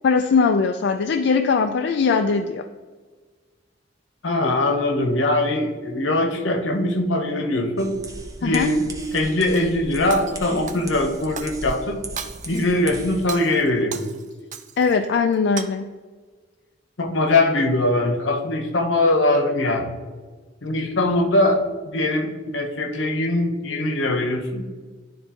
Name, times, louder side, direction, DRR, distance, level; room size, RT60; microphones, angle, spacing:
voice 1, 0.0-2.7 8.4-8.7 14.8-15.9, left 5 dB, 60° left, 5 dB, 0.4 m, -20 dB
voice 2, 4.2-8.0 8.4-8.9 9.1-12.0 12.5-14.0 17.0-19.9 20.6-21.6 21.9-24.7, left 2 dB, 80° left, 5 dB, 0.9 m, -21 dB
sound 1, 7.8-13.3, right 1 dB, 20° right, 0.8 m, -37 dB
Shatter, 9.0-9.7 10.1-11.8 12.2-12.8 13.2-15.0 15.3-15.6, right 7 dB, 40° right, 0.5 m, -37 dB
11.5 x 3.9 x 2.9 m, 1.4 s
head